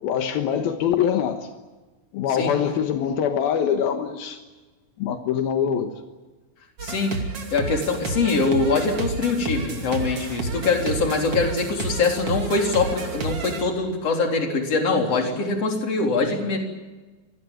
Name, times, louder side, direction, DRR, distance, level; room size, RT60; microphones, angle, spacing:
voice 1, 0.0-1.5 2.1-4.4 5.0-5.9, left 8 dB, 80° left, 6 dB, 3.2 m, -24 dB
voice 2, 6.8-7.1 7.5-16.6, left 3 dB, 40° left, 2 dB, 4.6 m, -23 dB
sound 1, 6.8-13.6, right 3 dB, 40° right, 3.3 m, -31 dB
26.0 x 19.0 x 8.9 m, 1.2 s
omnidirectional pair, 4.3 m